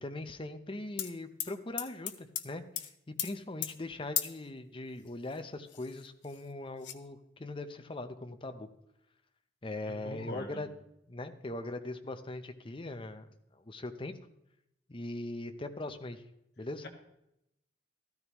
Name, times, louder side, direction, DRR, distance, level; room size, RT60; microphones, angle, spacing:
voice 1, 0.0-8.7 9.6-10.7 11.1-14.1 14.9-16.2 16.6-16.8, left 2 dB, 30° left, 8 dB, 0.7 m, -41 dB
sound 1, 1.0-1.1 1.4-2.5 2.8-2.9 3.2-3.3 3.6-3.7 4.2-4.4 5.3-5.4 5.7-6.4 6.8-6.9, left 12 dB, 75° left, 0.8 m, -35 dB
voice 2, 9.9-10.6, left 2 dB, 60° left, 2 dB, 1.9 m, -42 dB
14.0 x 13.0 x 3.1 m, 0.81 s
head